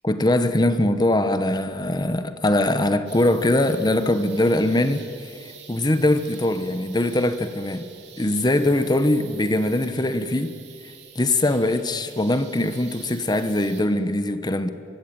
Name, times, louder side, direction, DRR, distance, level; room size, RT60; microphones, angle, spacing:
voice 1, 0.0-7.9 8.2-10.6 11.1-14.7, left 1 dB, 25° left, 10 dB, 1.1 m, -22 dB
sound 1, 3.1-13.8, right 9 dB, 70° right, 3.3 m, -47 dB
24.0 x 21.0 x 9.0 m, 2.5 s
head